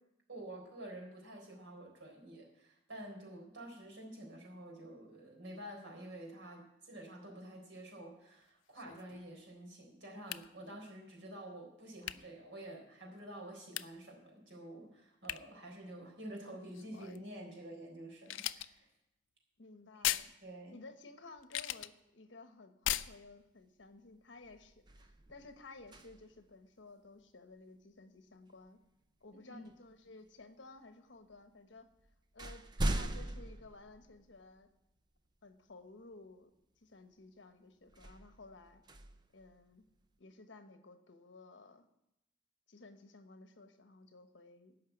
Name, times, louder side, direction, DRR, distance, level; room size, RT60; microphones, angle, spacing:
voice 1, 0.3-18.9 20.4-20.8 29.4-29.6, right 1 dB, 75° right, 0 dB, 4.0 m, -49 dB
sound 1, 8.8-9.3 10.3-10.5 12.0-12.2 13.8-14.0 15.2-15.4 16.7-17.3 18.3-18.7 20.0-20.3 21.4-21.9 22.8-23.1, left 13 dB, 90° left, 0.4 m, -37 dB
voice 2, 19.6-20.4 20.7-28.8 29.2-31.9 32.3-34.7 35.4-36.5 36.8-38.8 39.3-39.8 40.2-41.8 42.7-44.7, left 3 dB, 70° left, 8 dB, 1.1 m, -55 dB
sound 2, 23.8-24.1 24.4-26.5 28.7-28.8 29.7-30.4 31.3-31.4 31.8-34.6 35.2-35.3 37.9-40.1, right 1 dB, 25° right, 0.5 m, -41 dB
13.0 x 5.7 x 9.1 m, 0.85 s
head